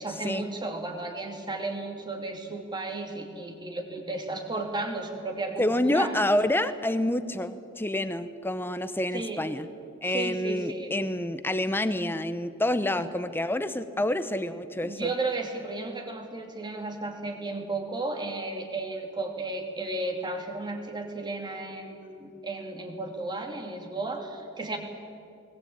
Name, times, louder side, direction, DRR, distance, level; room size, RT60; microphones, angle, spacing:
voice 1, 0.0-6.1 9.1-9.4 10.0-10.9 14.8-24.8, right 2 dB, 20° right, 2 dB, 2.8 m, -34 dB
voice 2, 5.6-9.7 10.0-15.1, left 1 dB, 10° left, 11 dB, 0.9 m, -28 dB
20.0 x 19.0 x 8.8 m, 2.5 s
head